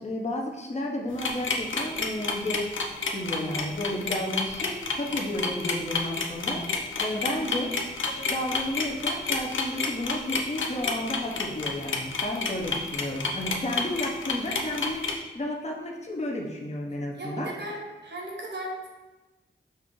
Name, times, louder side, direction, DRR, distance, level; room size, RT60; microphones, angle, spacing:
voice 1, 0.0-2.7 3.1-7.7 8.0-17.5, left 1 dB, 35° left, -1 dB, 0.7 m, -32 dB
sound 1, 1.1-15.1, left 4 dB, 70° left, 0.6 m, -29 dB
voice 2, 7.3-7.6 17.2-18.9, right 1 dB, 60° right, -1 dB, 1.2 m, -36 dB
5.4 x 2.5 x 3.7 m, 1.1 s
cardioid pair, 55°, 21 cm